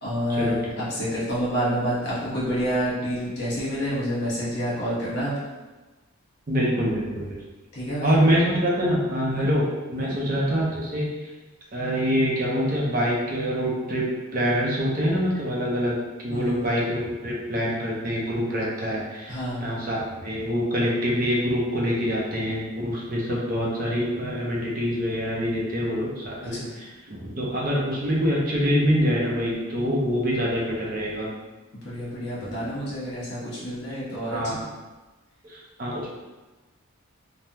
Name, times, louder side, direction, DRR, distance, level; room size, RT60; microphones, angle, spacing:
voice 1, 0.0-5.3 7.7-8.1 9.3-9.5 10.0-10.2 16.3-16.7 19.3-19.7 26.5-26.7 31.8-34.6, equal, 50° left, -8 dB, 1.1 m, -28 dB
voice 2, 6.5-7.4 8.0-11.1 11.7-14.1 14.3-16.0 16.2-31.3 32.4-32.6 34.3-34.6 35.4-36.2, equal, 40° right, -4 dB, 0.6 m, -25 dB
3.4 x 2.0 x 2.8 m, 1.2 s
head